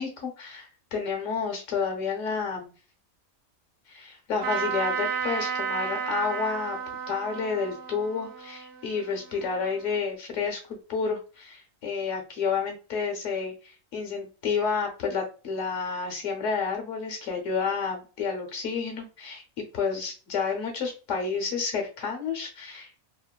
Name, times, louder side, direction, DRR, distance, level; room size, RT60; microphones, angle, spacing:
voice 1, 0.0-2.7 3.9-6.8 7.1-22.9, left 5 dB, 70° left, 3 dB, 1.1 m, -30 dB
Trumpet, 4.4-9.9, right 7 dB, 65° right, 0.9 m, -33 dB
2.9 x 2.4 x 2.2 m, 0.35 s
omnidirectional pair, 1.4 m